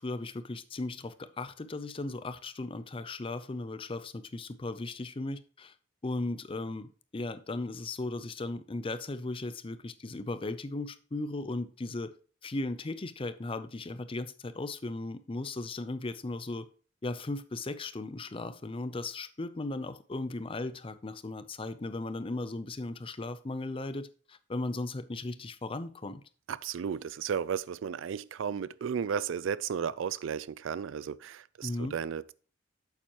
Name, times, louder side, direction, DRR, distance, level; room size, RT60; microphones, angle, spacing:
voice 1, 0.0-5.7 6.0-12.1 12.4-16.7 17.0-26.2 31.6-31.9, left 2 dB, 25° left, 0.5 m, -37 dB
voice 2, 26.5-32.3, right 7 dB, 70° right, 0.4 m, -34 dB
8.9 x 7.3 x 2.9 m
head